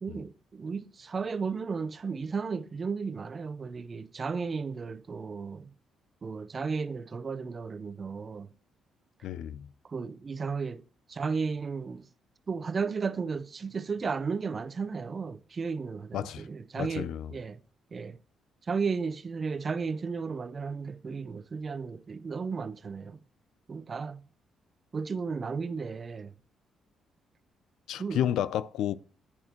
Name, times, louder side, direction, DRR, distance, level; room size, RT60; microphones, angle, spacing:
voice 1, 0.0-5.7 6.2-8.5 9.8-10.8 11.1-12.1 12.5-17.6 17.9-18.2 18.7-23.2 23.7-24.2 24.9-26.3 28.0-28.2, right 5 dB, 40° right, 0.6 m, -34 dB
voice 2, 9.2-9.7 16.1-16.5 16.8-17.3 27.9-29.0, left 10 dB, 80° left, 0.5 m, -31 dB
10.5 x 8.8 x 2.9 m
cardioid pair, 90°, 0 cm